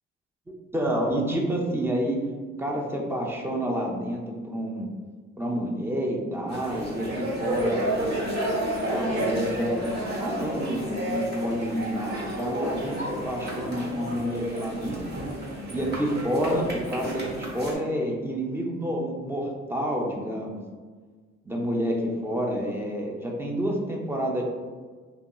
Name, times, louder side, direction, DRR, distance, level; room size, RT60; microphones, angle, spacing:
voice 1, 0.7-2.2 2.6-4.9 5.4-7.0 7.4-7.9 8.9-13.0 13.2-15.0 15.7-20.6 21.5-22.0 22.2-24.4, equal, 10° right, 0 dB, 0.5 m, -29 dB
sound 1, 6.5-17.7, right 1 dB, 35° right, 1.0 m, -31 dB
2.9 x 2.7 x 2.3 m, 1.5 s
cardioid pair, 90°, 30 cm